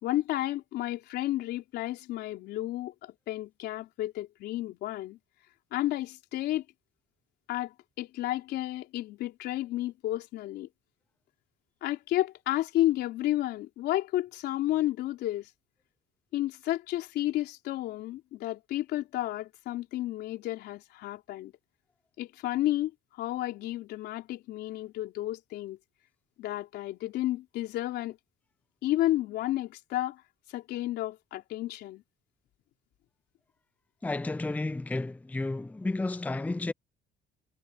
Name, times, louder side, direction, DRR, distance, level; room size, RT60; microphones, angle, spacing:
voice 1, 0.0-5.2 5.7-6.6 7.5-10.7 11.8-15.5 16.3-21.5 22.2-25.8 26.4-28.2 28.8-30.2 30.5-32.0, left 15 dB, 80° left, 3.9 m, -32 dB
voice 2, 34.0-36.7, left 2 dB, 10° left, 0.6 m, -32 dB
cardioid pair, 110°, 17 cm